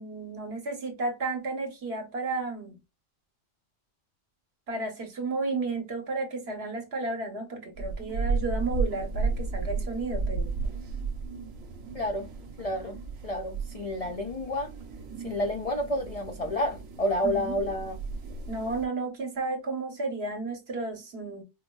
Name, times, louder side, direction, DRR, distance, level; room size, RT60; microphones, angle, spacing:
voice 1, 0.0-2.8 4.7-10.5 12.6-12.7 17.2-17.6 18.5-21.4, right 3 dB, 55° right, 1.3 m, -33 dB
sound 1, 7.8-18.9, right 4 dB, 85° right, 1.2 m, -34 dB
voice 2, 11.9-12.3 12.6-14.7 15.2-18.0, left 1 dB, 55° left, 0.4 m, -30 dB
4.7 x 2.0 x 2.2 m
omnidirectional pair, 1.4 m